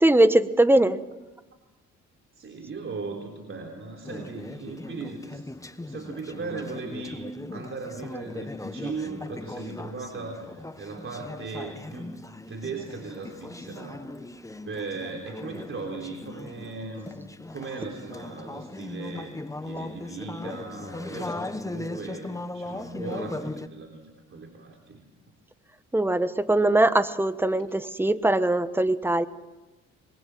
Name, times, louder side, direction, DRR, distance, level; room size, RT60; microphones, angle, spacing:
voice 1, 0.0-1.0 25.9-29.3, right 1 dB, 5° right, 12 dB, 1.3 m, -21 dB
voice 2, 2.3-5.5 5.8-7.3 7.5-12.2 12.5-14.3 14.6-17.2 17.5-25.0, right 4 dB, 40° right, 3 dB, 3.5 m, -38 dB
Conversation / Chatter, 4.0-23.7, left 2 dB, 10° left, 1.2 m, -38 dB
26.0 x 22.0 x 7.7 m, 1.1 s
cardioid pair, 90°, 30 cm